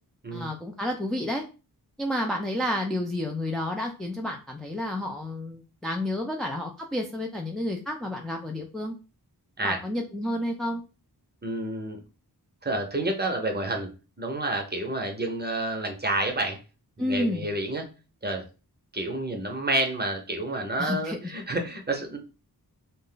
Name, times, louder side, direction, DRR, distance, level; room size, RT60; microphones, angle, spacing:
voice 1, 0.3-1.4 2.0-9.0 9.6-10.8 17.0-17.5 20.8-21.3, left 1 dB, ahead, 1 dB, 0.4 m, -30 dB
voice 2, 11.4-12.0 12.6-13.9 14.2-16.6 17.0-17.9 18.2-18.4 18.9-22.2, right 2 dB, 25° right, 3 dB, 0.7 m, -29 dB
2.4 x 2.1 x 3.7 m, 0.32 s
wide cardioid pair, 55°, 40 cm